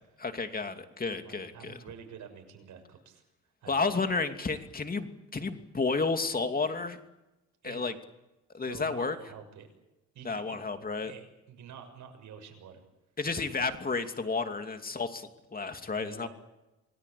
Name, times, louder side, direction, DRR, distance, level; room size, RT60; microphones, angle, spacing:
voice 1, 0.2-1.8 3.7-7.0 7.6-7.9 8.5-9.2 10.2-11.1 13.2-16.3, left 4 dB, 30° left, 7 dB, 2.8 m, -32 dB
voice 2, 1.2-3.2 3.6-3.9 7.6-7.8 8.6-9.7 10.1-10.6 11.0-12.8 15.9-16.3, right 7 dB, 75° right, 5 dB, 6.8 m, -48 dB
27.5 x 19.0 x 8.6 m, 1.0 s
cardioid pair, 90°, 30 cm